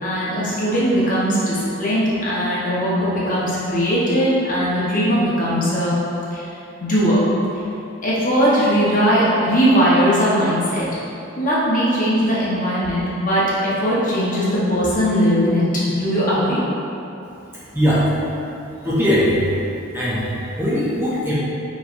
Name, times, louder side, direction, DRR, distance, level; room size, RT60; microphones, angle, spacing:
voice 1, 0.0-6.0 6.3-6.5 6.8-7.3 8.0-10.9 11.4-15.7 16.0-16.6, equal, 40° left, -8 dB, 0.9 m, -19 dB
voice 2, 17.7-18.1 18.8-19.4 19.9-21.3, equal, 10° right, -10 dB, 0.7 m, -20 dB
5.4 x 3.2 x 2.5 m, 2.8 s
head